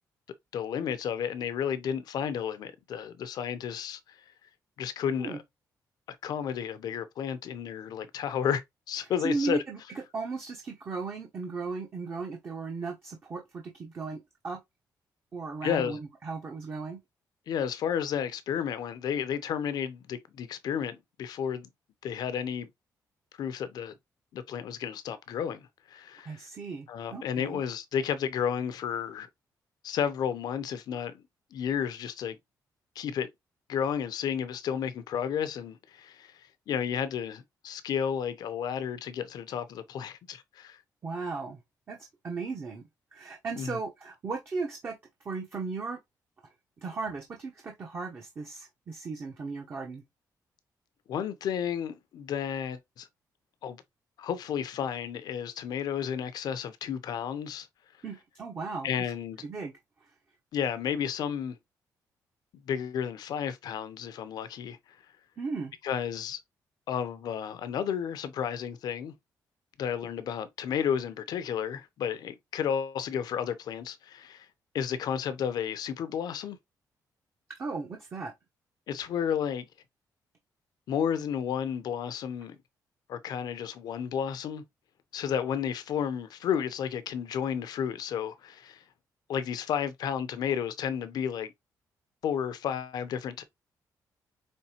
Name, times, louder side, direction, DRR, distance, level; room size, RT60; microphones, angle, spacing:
voice 1, 0.5-4.2 4.8-5.4 6.1-8.6 8.9-9.6 15.6-16.0 17.5-21.7 22.0-22.7 23.4-23.9 24.3-26.4 26.9-29.3 29.8-31.2 31.5-32.4 33.0-33.3 33.7-36.4 36.7-40.8 43.6-43.8 51.1-53.1 53.6-53.8 54.2-57.7 58.8-59.4 60.5-61.6 62.7-64.8 65.8-66.4 66.9-69.1 69.8-74.5 74.7-76.6 78.9-79.7 80.9-82.6 83.1-84.6 85.1-88.8 89.3-91.5 92.2-93.4, left 8 dB, 70° left, 0.8 m, -32 dB
voice 2, 9.2-9.8 10.1-14.6 15.3-17.0 26.2-27.6 41.0-41.6 41.9-42.0 42.2-42.8 43.1-45.0 45.2-46.0 46.8-50.0 58.0-59.1 59.4-59.7 65.4-65.7 77.6-78.3, right 4 dB, 35° right, 0.9 m, -36 dB
5.3 x 3.3 x 2.9 m
cardioid pair, 165°, 7 cm